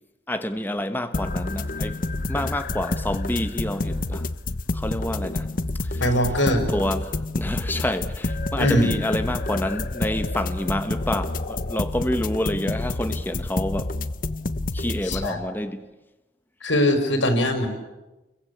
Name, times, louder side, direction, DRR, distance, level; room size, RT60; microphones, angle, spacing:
voice 1, 0.3-2.0 2.3-4.3 4.7-5.5 5.8-6.0 6.7-14.0 14.7-15.8, left 1 dB, 10° left, 1.1 m, -28 dB
sound 1, 1.1-15.3, left 2 dB, 45° left, 1.0 m, -28 dB
voice 2, 6.0-6.7 8.6-8.9 15.0-15.4 16.6-17.7, equal, 85° left, 5.5 m, -21 dB
29.5 x 23.0 x 8.5 m
head